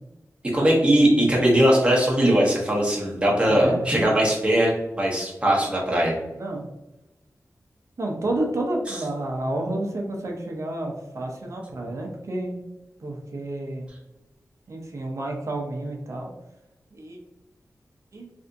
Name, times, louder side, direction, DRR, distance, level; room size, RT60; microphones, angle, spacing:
voice 1, 0.5-6.2 8.9-9.0, right 1 dB, 20° right, -4 dB, 1.0 m, -20 dB
voice 2, 3.5-3.9 6.4-6.7 8.0-12.6 13.0-13.8 14.7-16.3 16.9-17.2 18.1-18.3, right 1 dB, 55° right, 0 dB, 0.7 m, -30 dB
3.4 x 2.6 x 2.5 m, 0.98 s
wide cardioid pair, 110°, 6 cm